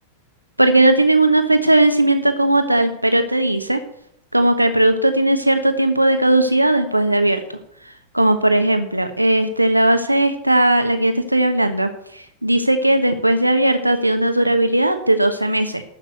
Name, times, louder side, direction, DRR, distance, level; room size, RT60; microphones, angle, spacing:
voice 1, 0.6-3.8 4.3-7.4 8.1-15.8, right 1 dB, 85° right, 7 dB, 1.2 m, -17 dB
12.5 x 6.0 x 8.0 m, 0.71 s
figure-of-eight pair, 90°, 0 cm